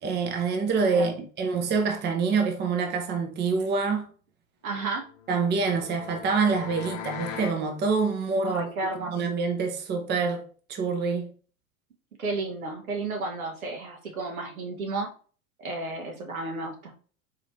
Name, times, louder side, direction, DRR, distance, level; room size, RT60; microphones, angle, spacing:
voice 1, 0.0-4.1 5.3-8.7 9.1-11.3, right 4 dB, 25° right, 0.7 m, -26 dB
voice 2, 4.6-5.0 8.4-9.1 12.2-15.1 15.6-16.9, right 3 dB, 80° right, 1.2 m, -32 dB
sound 1, 5.0-7.6, left 8 dB, 70° left, 0.8 m, -40 dB
4.0 x 2.9 x 3.0 m
hypercardioid pair, 90°, 42 cm